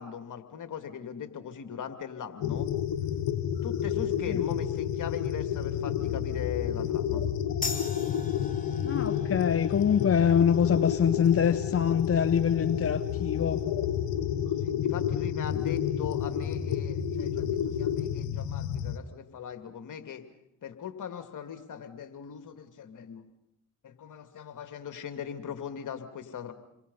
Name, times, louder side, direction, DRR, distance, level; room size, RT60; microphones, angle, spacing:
voice 1, 0.0-2.7 3.6-7.2 14.6-20.2 20.6-23.2 23.8-26.5, left 8 dB, 65° left, 7 dB, 2.6 m, -40 dB
sound 1, 2.4-19.0, left 9 dB, 85° left, 1.5 m, -30 dB
sound 2, 7.6-14.7, left 4 dB, 25° left, 3.7 m, -43 dB
voice 2, 8.8-13.6, left 8 dB, 45° left, 12 dB, 0.9 m, -25 dB
28.5 x 23.0 x 5.6 m, 0.80 s
supercardioid pair, 50°, 34 cm